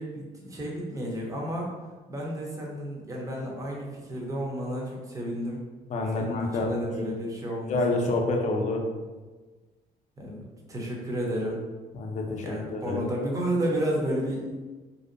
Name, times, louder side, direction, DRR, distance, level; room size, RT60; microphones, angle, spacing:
voice 1, 0.0-1.7 2.1-5.6 6.1-8.1 10.2-10.4 10.7-11.6 12.4-14.6, equal, 20° right, -2 dB, 0.6 m, -31 dB
voice 2, 5.9-7.0 7.7-8.8 11.9-12.4 12.7-13.1, left 2 dB, 45° left, 2 dB, 0.5 m, -28 dB
2.6 x 2.0 x 2.5 m, 1.3 s
cardioid pair, 110°, 17 cm